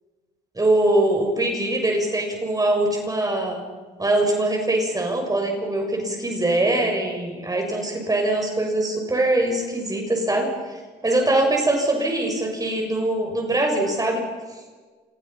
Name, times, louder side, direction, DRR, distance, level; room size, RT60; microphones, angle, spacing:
voice 1, 0.5-3.6 4.0-14.2, right 1 dB, 20° right, 2 dB, 6.5 m, -22 dB
28.0 x 28.0 x 5.8 m, 1.4 s
cardioid pair, 85°, 18 cm